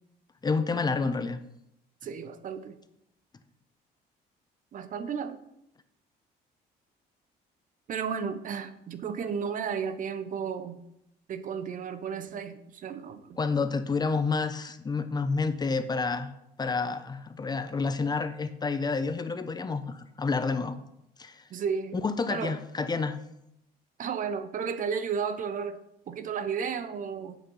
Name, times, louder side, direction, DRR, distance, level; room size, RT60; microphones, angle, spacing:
voice 1, 0.4-1.4 13.4-16.3 16.6-20.8 21.2-21.4 22.0-23.2, left 4 dB, 25° left, 10 dB, 0.7 m, -29 dB
voice 2, 2.0-2.8 4.7-5.4 7.9-10.8 11.3-13.4 21.5-21.9 22.3-22.6 24.0-25.8 26.1-27.4, right 6 dB, 50° right, 11 dB, 0.9 m, -33 dB
8.3 x 6.7 x 5.5 m, 0.82 s
cardioid pair, 110°, 17 cm